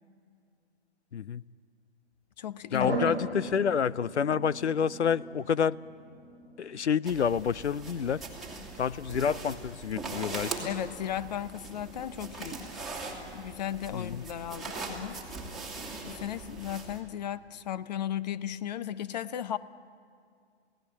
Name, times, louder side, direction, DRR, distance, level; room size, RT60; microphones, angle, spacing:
voice 1, 1.1-1.4 2.7-5.8 6.6-8.2 8.8-10.6 13.9-14.2, left 7 dB, 80° left, 0.6 m, -28 dB
voice 2, 2.4-3.5 10.6-12.6 13.3-15.2 16.0-19.6, left 10 dB, 40° left, 0.7 m, -36 dB
sound 1, 2.8-16.3, right 1 dB, 15° left, 7.0 m, -42 dB
sound 2, 7.1-17.0, right 3 dB, ahead, 2.2 m, -41 dB
28.5 x 17.5 x 8.6 m
figure-of-eight pair, 135°, 34 cm